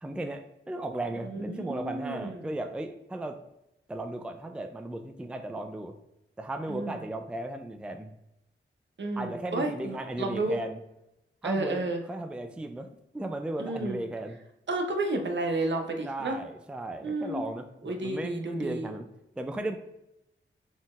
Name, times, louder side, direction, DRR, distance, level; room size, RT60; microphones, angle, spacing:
voice 1, 0.0-3.4 3.9-5.9 6.4-8.1 9.2-10.8 11.4-12.9 13.1-14.4 16.0-19.1 19.4-19.8, right 1 dB, 5° right, 6 dB, 0.4 m, -36 dB
voice 2, 1.3-2.4 6.7-7.0 9.0-10.6 11.4-12.0 13.6-14.0 14.7-16.4 17.0-17.4 17.8-18.9, right 2 dB, 60° right, 4 dB, 0.7 m, -31 dB
4.0 x 3.9 x 2.4 m, 0.88 s
cardioid pair, 65°, 21 cm